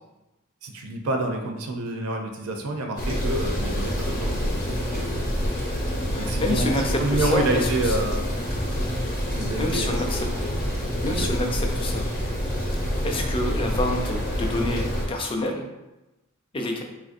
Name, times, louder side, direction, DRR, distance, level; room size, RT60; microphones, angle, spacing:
voice 1, 0.6-4.5 6.2-8.3 9.3-10.1 11.1-11.3, right 2 dB, 90° right, 3 dB, 0.5 m, -28 dB
sound 1, 3.0-15.1, equal, 40° left, 0.8 m, -27 dB
voice 2, 6.1-8.0 9.6-10.3 11.0-12.1 12.7-15.7 16.5-16.8, left 2 dB, 25° left, 3 dB, 0.4 m, -28 dB
3.9 x 2.5 x 2.5 m, 0.99 s
head